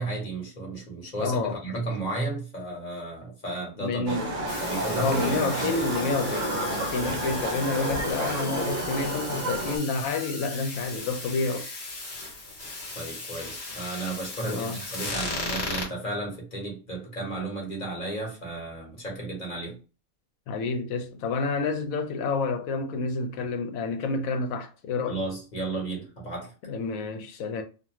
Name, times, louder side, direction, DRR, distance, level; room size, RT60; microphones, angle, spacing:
voice 1, 0.0-4.2 4.7-5.8 12.9-19.8 25.1-26.5, right 2 dB, 35° left, 1.2 m, -34 dB
voice 2, 1.2-1.8 3.8-4.3 4.9-11.7 14.4-14.8 20.5-25.2 26.6-27.6, left 4 dB, 80° left, 1.0 m, -29 dB
Livestock farm animals working animals, 4.1-9.8, right 1 dB, 50° right, 0.6 m, -30 dB
sound 1, 4.5-15.9, left 2 dB, 50° left, 1.2 m, -37 dB
2.6 x 2.4 x 2.9 m
omnidirectional pair, 1.5 m